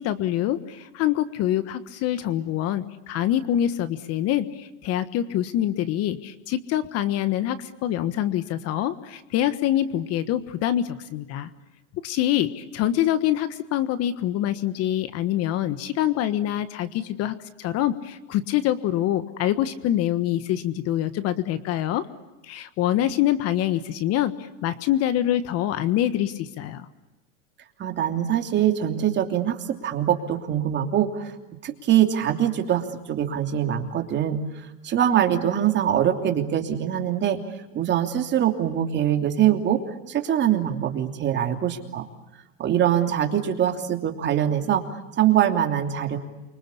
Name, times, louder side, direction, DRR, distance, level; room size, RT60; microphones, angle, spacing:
voice 1, 0.0-11.5 12.0-22.1 22.4-26.9, left 12 dB, 40° left, 13 dB, 1.5 m, -25 dB
voice 2, 27.8-31.3 31.6-37.4 37.7-39.8 40.1-42.0 42.6-44.8 45.2-46.2, right 10 dB, 30° right, 5 dB, 3.0 m, -23 dB
28.5 x 25.0 x 8.4 m, 1.1 s
supercardioid pair, 135°, 38 cm